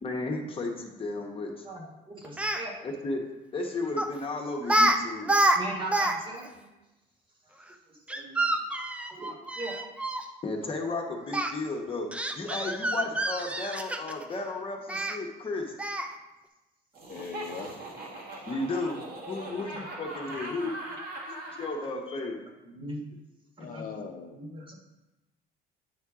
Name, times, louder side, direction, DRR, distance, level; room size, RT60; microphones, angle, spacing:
voice 1, 0.0-1.7 2.8-3.2 3.5-5.3 10.4-15.7 18.4-22.4, left 2 dB, 30° left, 1 dB, 1.0 m, -34 dB
voice 2, 1.6-2.7 5.5-6.7 8.1-8.3 9.1-9.8 22.6-23.0 23.6-23.9 24.3-24.8, right 1 dB, 25° right, 0 dB, 1.5 m, -39 dB
Speech, 2.2-2.6 4.0-4.2 4.6-5.0 5.2-6.2 6.4-6.5 8.1-10.2 11.3-11.5 12.1-14.3 14.9-15.2 15.8-16.1, right 1 dB, 5° right, 0.5 m, -27 dB
Laughter, 16.9-21.8, right 1 dB, 60° right, 1.6 m, -40 dB
voice 3, 17.1-17.8 19.5-19.7 23.6-24.4, left 5 dB, 50° left, 3 dB, 0.7 m, -40 dB
8.8 x 4.4 x 3.6 m, 1.0 s
cardioid pair, 115°, 18 cm